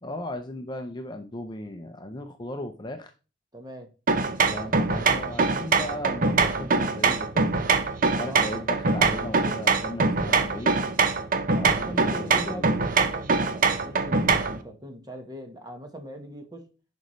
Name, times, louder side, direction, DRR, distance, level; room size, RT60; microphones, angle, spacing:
voice 1, 0.0-3.1 4.4-7.5 8.2-10.8 11.6-12.7, left 1 dB, 25° left, 0.6 m, -36 dB
voice 2, 3.5-3.9 8.3-8.6 11.5-16.7, equal, 20° right, 1.2 m, -40 dB
sound 1, 4.1-14.6, right 4 dB, 45° right, 0.6 m, -23 dB
10.5 x 5.3 x 3.1 m
head